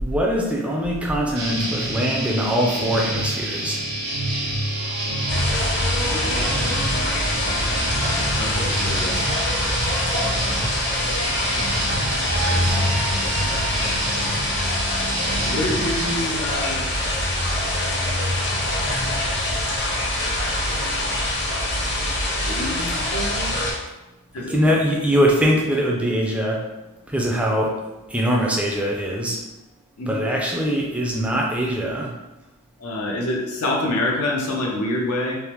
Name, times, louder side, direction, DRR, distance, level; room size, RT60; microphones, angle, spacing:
voice 1, 0.0-3.8 24.4-26.6 27.1-27.8 28.1-29.4 30.1-32.1, equal, 5° right, -2 dB, 0.3 m, -22 dB
sound 1, 1.3-16.1, right 1 dB, 85° right, 0.7 m, -28 dB
sound 2, 4.6-14.4 14.8-15.5, right 1 dB, 65° left, 1.2 m, -34 dB
sound 3, 5.3-23.7, left 1 dB, 50° left, 0.8 m, -24 dB
voice 2, 6.0-6.5 8.4-9.3 12.4-12.8 15.3-16.8 20.7-20.8 22.5-23.5 24.3-24.5 30.0-30.2 32.8-35.4, left 1 dB, 90° left, -1 dB, 0.7 m, -27 dB
3.3 x 2.0 x 2.9 m, 1.0 s
head